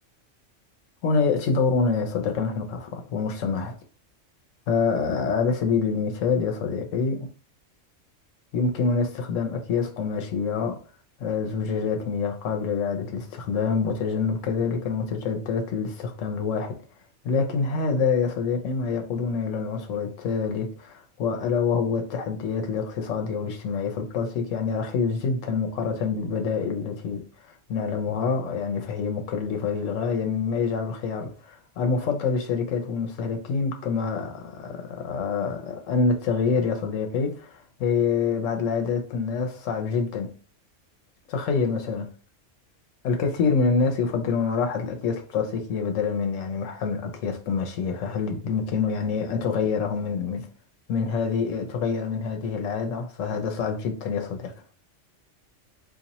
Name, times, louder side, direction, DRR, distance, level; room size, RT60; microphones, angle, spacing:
voice 1, 1.0-3.7 4.7-7.3 8.5-10.8 11.2-16.7 17.2-40.3 41.3-42.0 43.0-50.5 50.9-54.5, left 5 dB, 90° left, 1.0 m, -26 dB
4.0 x 2.4 x 2.9 m
omnidirectional pair, 1.3 m